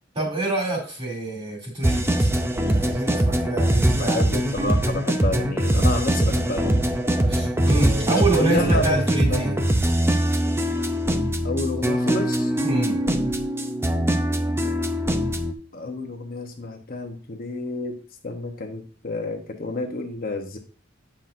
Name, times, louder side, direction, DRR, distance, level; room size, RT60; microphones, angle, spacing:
voice 1, 0.1-2.3 2.7-4.2 7.3-9.5 12.6-13.0, right 2 dB, 30° right, -2 dB, 2.8 m, -26 dB
sound 1, 1.8-15.5, right 1 dB, 15° right, 0.5 m, -22 dB
voice 2, 4.0-6.9 8.0-9.5 11.4-12.5 15.7-17.9 18.2-20.6, left 2 dB, 45° left, 3 dB, 0.9 m, -30 dB
8.9 x 5.7 x 2.6 m, 0.39 s
head